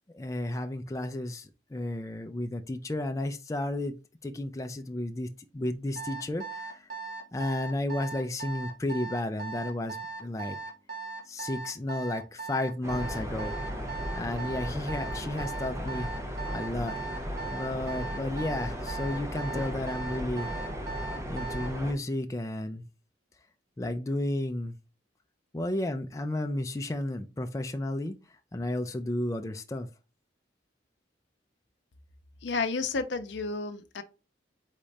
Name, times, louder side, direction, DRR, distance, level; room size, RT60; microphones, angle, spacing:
voice 1, 0.1-3.9 4.2-6.9 7.3-10.6 11.3-13.6 14.1-16.1 16.5-17.0 17.5-20.5 21.3-22.8 23.8-24.7 25.5-28.1 28.5-29.9, left 1 dB, 15° left, 0.4 m, -32 dB
Alarm, 6.0-21.8, right 5 dB, 45° right, 1.3 m, -38 dB
sound 1, 12.8-21.9, equal, 15° right, 0.7 m, -36 dB
voice 2, 32.4-34.0, left 4 dB, 75° left, 0.5 m, -31 dB
4.0 x 3.6 x 3.3 m
head